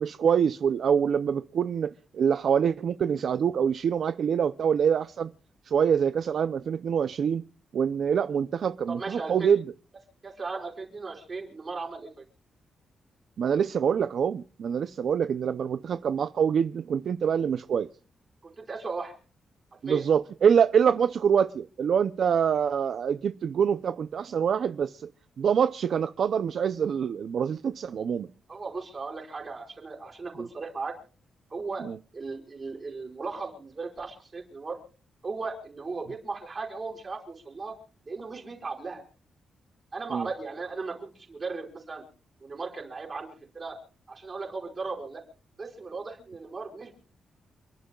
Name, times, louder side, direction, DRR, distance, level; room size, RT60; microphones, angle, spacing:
voice 1, 0.0-5.3 5.6-7.4 7.7-9.6 13.4-17.9 19.8-25.1 25.4-28.3 30.4-30.5 31.8-32.0 40.1-40.3, right 7 dB, 55° right, 0.5 m, -25 dB
voice 2, 8.9-9.5 10.2-12.3 18.4-19.1 19.9-20.0 28.5-30.9 31.5-31.9 32.1-34.8 35.2-37.8 38.1-39.0 39.9-42.0 42.4-43.8 44.1-45.2 45.6-46.9, right 4 dB, 30° right, 5.0 m, -36 dB
29.0 x 11.5 x 2.3 m
wide cardioid pair, 160°, 0 cm